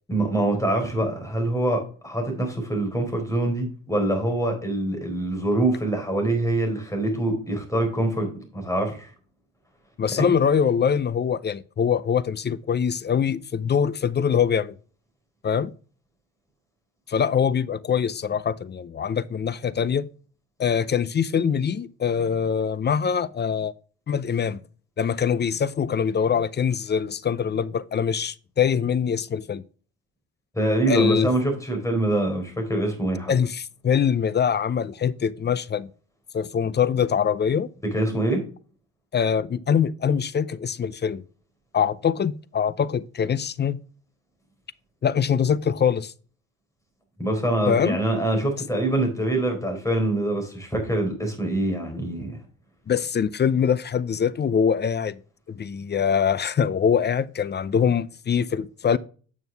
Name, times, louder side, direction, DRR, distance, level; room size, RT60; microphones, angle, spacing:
voice 1, 0.1-9.1 10.2-10.3 30.6-33.3 37.8-38.4 47.2-52.4, right 1 dB, 10° left, 4.1 m, -25 dB
voice 2, 10.0-14.7 15.4-15.7 17.1-20.1 20.6-23.7 24.1-24.6 25.0-29.6 30.9-31.5 33.3-35.9 36.3-37.7 39.1-41.2 41.7-43.8 45.0-46.1 47.7-48.0 52.9-55.2 55.5-59.0, left 7 dB, 35° left, 0.5 m, -23 dB
9.1 x 6.2 x 3.4 m
cardioid pair, 90°, 30 cm